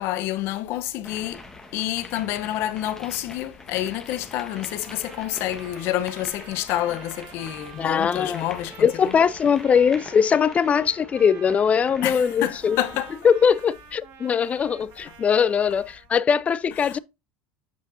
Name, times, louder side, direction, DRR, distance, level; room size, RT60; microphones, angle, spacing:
voice 1, 0.0-1.4 1.7-9.2 12.0-13.1 16.8-17.0, left 13 dB, 60° left, 0.8 m, -28 dB
sound 1, 1.0-13.1, left 2 dB, 10° left, 1.3 m, -44 dB
Trumpet, 4.5-16.1, right 8 dB, 55° right, 1.7 m, -47 dB
voice 2, 7.8-8.4 8.8-12.8 13.2-17.0, left 7 dB, 30° left, 0.4 m, -21 dB
8.1 x 5.1 x 2.6 m
supercardioid pair, 95°, 5 cm